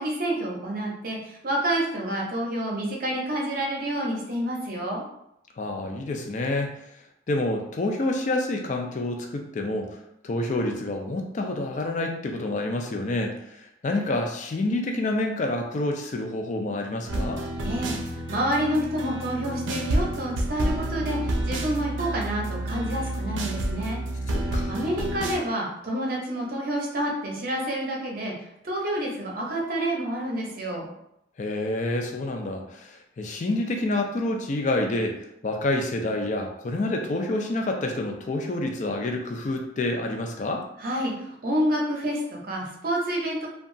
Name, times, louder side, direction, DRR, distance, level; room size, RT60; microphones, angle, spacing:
voice 1, 0.0-5.0 17.6-18.0 18.3-24.0 24.7-28.3 28.6-30.9 40.8-43.5, right 1 dB, 50° right, -1 dB, 0.6 m, -28 dB
voice 2, 5.6-6.8 7.3-10.0 10.2-17.4 24.3-24.7 31.4-40.6, left 2 dB, 40° left, 3 dB, 0.4 m, -28 dB
sound 1, 17.1-25.4, right 1 dB, 90° right, 0.4 m, -29 dB
2.8 x 2.3 x 2.6 m, 0.77 s
head